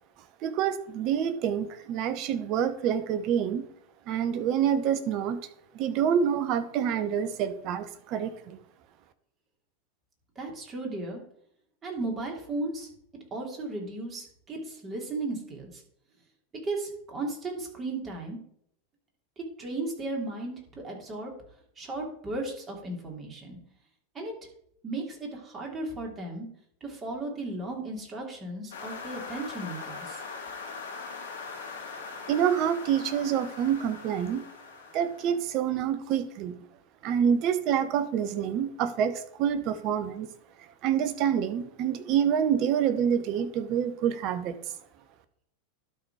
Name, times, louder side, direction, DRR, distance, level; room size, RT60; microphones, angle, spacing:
voice 1, 0.4-3.7 4.1-5.5 5.7-8.6 32.3-34.4 34.9-36.6 37.0-40.3 40.8-44.5, right 8 dB, 45° right, 12 dB, 0.9 m, -27 dB
voice 2, 10.4-11.2 11.8-12.9 13.3-15.8 16.6-18.4 19.6-21.3 21.8-23.6 24.1-24.3 24.8-26.5 26.8-30.2, right 2 dB, 25° right, 0 dB, 2.9 m, -35 dB
sound 1, 28.7-35.4, left 4 dB, 75° left, 2.3 m, -41 dB
12.0 x 4.2 x 4.9 m, 0.68 s
figure-of-eight pair, 90°, 0 cm